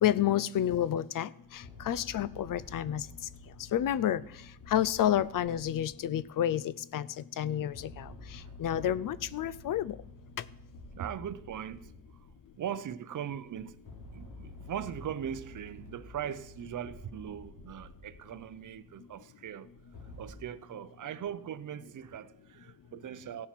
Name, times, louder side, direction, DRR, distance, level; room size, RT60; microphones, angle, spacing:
voice 1, 0.0-3.1 3.7-4.2 4.7-10.0, left 11 dB, 60° left, 0.5 m, -30 dB
sound 1, 1.4-6.7 7.4-12.8 13.5-18.9 19.6-20.3, left 2 dB, 80° left, 3.4 m, -50 dB
voice 2, 8.2-8.6 11.0-11.9 12.6-13.8 14.1-19.7 20.0-23.5, right 9 dB, 55° right, 0.6 m, -40 dB
15.5 x 7.3 x 5.8 m
wide cardioid pair, 130°, 37 cm